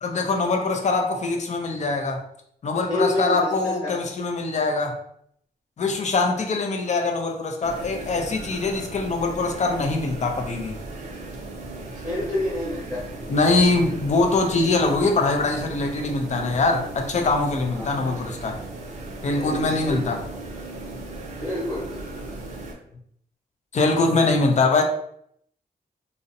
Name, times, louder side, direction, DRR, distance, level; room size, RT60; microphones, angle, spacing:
voice 1, 0.0-2.2 2.6-5.0 5.8-10.8 13.3-18.6 19.2-20.2 23.7-24.8, left 3 dB, 45° left, 3 dB, 0.4 m, -23 dB
voice 2, 2.9-4.0 11.9-13.0 17.8-17.9 19.2-20.0 21.4-22.1, left 1 dB, 15° left, -8 dB, 1.0 m, -28 dB
sound 1, 7.6-22.7, right 2 dB, 50° right, 0.5 m, -37 dB
2.5 x 2.0 x 2.6 m, 0.70 s
wide cardioid pair, 140°, 16 cm